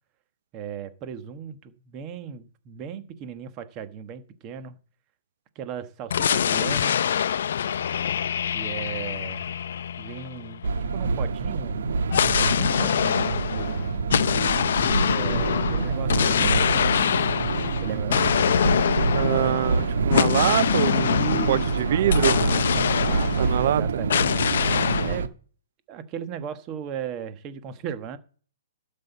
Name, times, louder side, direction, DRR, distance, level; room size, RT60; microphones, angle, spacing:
voice 1, 0.5-4.8 5.5-7.0 8.5-9.5 10.0-10.6 10.9-11.9 12.2-14.1 15.1-16.9 17.4-18.4 19.3-20.1 21.1-24.4 25.0-25.3 25.9-28.2, right 8 dB, 25° right, 1.2 m, -37 dB
sound 1, 6.1-10.8 12.1-23.7 24.1-25.2, left 8 dB, 65° left, 0.5 m, -24 dB
sound 2, 10.6-25.3, right 4 dB, 80° right, 1.3 m, -26 dB
voice 2, 19.1-22.4 23.4-23.8, right 12 dB, 50° right, 0.5 m, -24 dB
12.5 x 5.6 x 8.1 m
hypercardioid pair, 165°, 0 cm